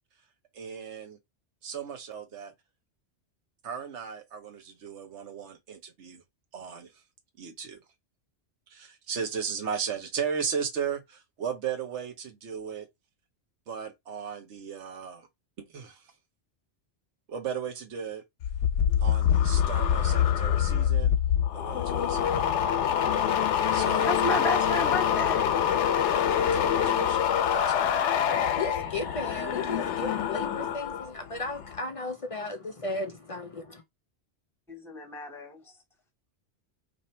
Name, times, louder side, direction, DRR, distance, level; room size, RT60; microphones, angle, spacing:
voice 1, 0.5-1.2 1.6-2.5 3.6-6.2 6.5-6.9 7.4-7.8 8.7-12.9 13.7-15.3 15.6-16.1 17.3-18.2 19.0-21.1 21.5-22.5 23.7-24.2 26.1-28.0, right 7 dB, 85° right, 1.2 m, -36 dB
sound 1, 18.4-31.1 31.4-31.8, left 9 dB, 90° left, 0.9 m, -25 dB
voice 2, 24.0-25.5 34.7-35.7, left 2 dB, ahead, 0.9 m, -31 dB
voice 3, 28.4-33.8, left 2 dB, 50° left, 0.4 m, -35 dB
2.7 x 2.6 x 4.2 m
omnidirectional pair, 1.2 m